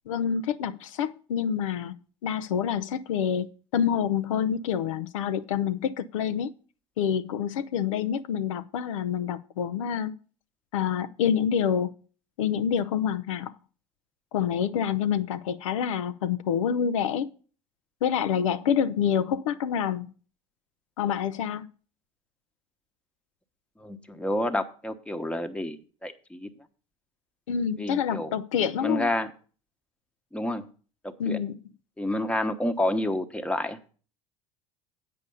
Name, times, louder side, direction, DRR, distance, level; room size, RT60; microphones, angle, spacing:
voice 1, 0.1-1.9 2.2-6.5 7.0-10.1 10.7-11.9 12.4-13.5 14.3-17.3 18.0-20.1 21.0-21.7 27.5-29.1 31.2-31.5, left 8 dB, 85° left, 0.5 m, -27 dB
voice 2, 23.8-26.5 27.8-28.3 28.8-29.3 30.3-30.6 31.0-31.4 32.0-33.9, left 1 dB, 5° left, 1.0 m, -29 dB
8.4 x 5.2 x 6.8 m
hypercardioid pair, 80°, 16 cm